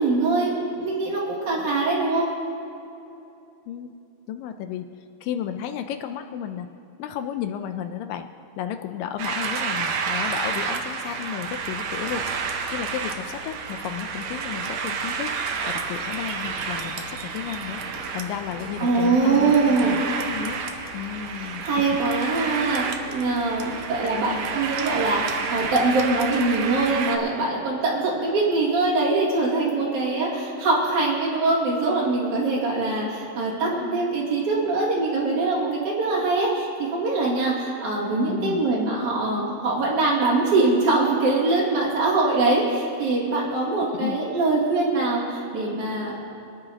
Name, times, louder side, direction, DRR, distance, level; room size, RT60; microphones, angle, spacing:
voice 1, 0.0-2.3 18.8-20.0 21.4-46.3, right 3 dB, 60° right, -6 dB, 3.5 m, -23 dB
voice 2, 4.3-4.9 5.2-6.7 7.0-8.3 8.6-15.3 15.7-20.6 20.9-21.7 24.0-24.4 33.5-34.2 38.2-38.6 43.9-44.2, left 9 dB, 80° left, 8 dB, 2.1 m, -33 dB
sound 1, 9.2-27.2, right 5 dB, 75° right, 1.6 m, -30 dB
sound 2, 11.4-26.6, equal, 35° right, 2.6 m, -43 dB
24.5 x 10.5 x 2.9 m, 2.8 s
omnidirectional pair, 4.0 m